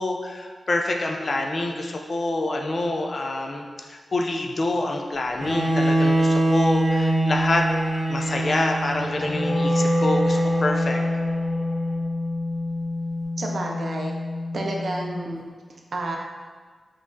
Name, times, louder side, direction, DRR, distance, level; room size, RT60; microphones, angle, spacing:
voice 1, 0.0-7.7 8.1-11.0, left 2 dB, 45° left, 2 dB, 0.3 m, -26 dB
Bowed string instrument, 5.4-11.4, right 1 dB, 35° right, 1.4 m, -24 dB
Wind instrument woodwind instrument, 9.1-15.4, left 1 dB, 65° left, 0.9 m, -26 dB
voice 2, 13.4-14.1 14.5-15.4 15.9-16.2, right 2 dB, 60° right, 0 dB, 0.5 m, -29 dB
5.1 x 2.3 x 2.5 m, 1.5 s
wide cardioid pair, 125°, 0 cm